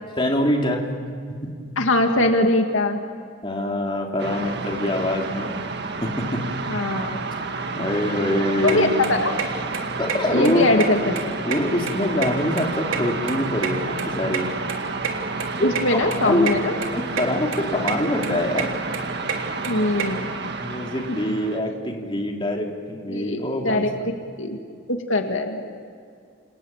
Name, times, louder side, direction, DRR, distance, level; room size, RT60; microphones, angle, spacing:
voice 1, 0.2-0.8 1.4-1.5 3.4-5.6 6.0-6.4 7.8-8.9 10.0-10.9 11.5-14.5 15.6-16.5 16.9-18.7 20.6-24.1, left 1 dB, 25° left, 0 dB, 3.3 m, -24 dB
voice 2, 1.8-3.0 6.7-7.2 8.6-9.3 10.3-11.3 15.6-16.7 19.7-20.3 23.1-23.9 24.4-24.6 24.9-25.7, left 2 dB, 75° left, 4 dB, 2.1 m, -22 dB
sound 1, 4.2-21.6, right 3 dB, 55° right, 1.7 m, -30 dB
sound 2, 8.7-8.8 9.0-9.5 9.7-9.8 10.1-10.2 10.4-11.2 11.5-12.7 12.9-14.4 14.7-14.8 15.0-15.1 15.4-15.5 15.7-15.9 16.1-16.5 16.8-17.2 17.5-18.0 18.2-20.0, right 7 dB, 75° right, 3.5 m, -27 dB
29.0 x 27.5 x 7.4 m, 2.3 s
head